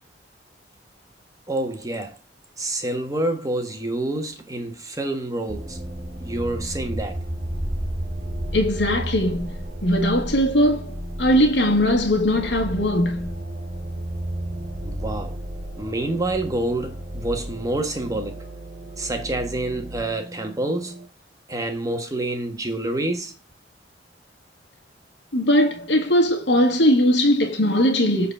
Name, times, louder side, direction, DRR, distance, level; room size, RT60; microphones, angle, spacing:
voice 1, 1.5-2.2 2.6-5.8 6.2-7.2 14.8-15.4 15.8-18.4 19.0-21.0 21.5-23.3, right 1 dB, 20° right, 1.4 m, -27 dB
sound 1, 5.5-21.1, right 1 dB, 35° right, 1.7 m, -33 dB
voice 2, 8.5-13.3 25.3-28.3, equal, 70° left, 1.7 m, -20 dB
7.9 x 4.1 x 5.4 m
head